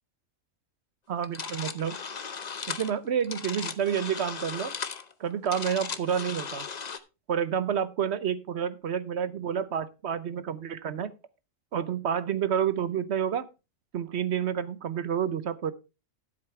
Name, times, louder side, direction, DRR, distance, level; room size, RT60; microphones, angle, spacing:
voice 1, 1.1-2.0 2.7-4.7 5.2-6.7 7.3-11.1 11.7-13.5 13.9-15.7, right 8 dB, 60° right, 15 dB, 1.0 m, -29 dB
sound 1, 1.2-7.0, left 6 dB, 40° left, 0.8 m, -37 dB
13.0 x 7.9 x 3.3 m, 0.28 s
omnidirectional pair, 1.4 m